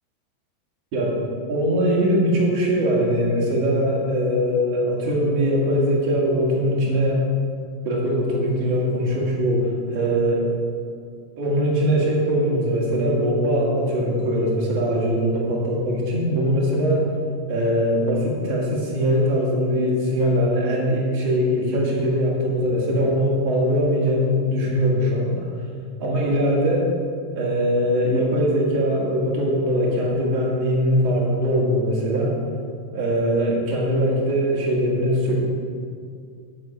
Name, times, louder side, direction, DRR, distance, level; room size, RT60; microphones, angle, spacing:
voice 1, 1.5-7.2 7.8-10.5 11.4-17.1 17.5-25.5 26.0-26.9 27.3-32.3 32.9-35.4, equal, 60° right, -4 dB, 1.7 m, -21 dB
11.0 x 5.7 x 4.9 m, 2.2 s
omnidirectional pair, 5.3 m